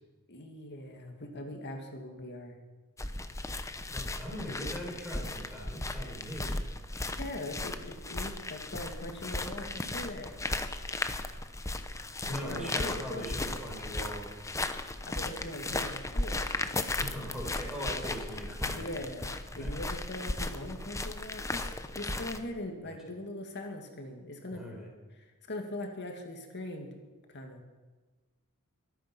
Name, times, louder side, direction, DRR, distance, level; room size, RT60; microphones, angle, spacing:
voice 1, 0.3-2.6 7.1-10.3 12.3-13.7 15.1-16.8 18.6-24.6 25.2-26.9 27.3-27.6, left 1 dB, 50° left, 3 dB, 2.1 m, -41 dB
sound 1, 3.0-22.4, left 2 dB, 15° left, 0.8 m, -36 dB
voice 2, 3.9-6.6 12.2-14.3 17.0-18.9 19.5-19.8 21.5-21.7 22.1-22.3 22.8-23.0 24.5-24.9, equal, ahead, -2 dB, 4.1 m, -40 dB
23.5 x 9.2 x 6.1 m, 1.3 s
head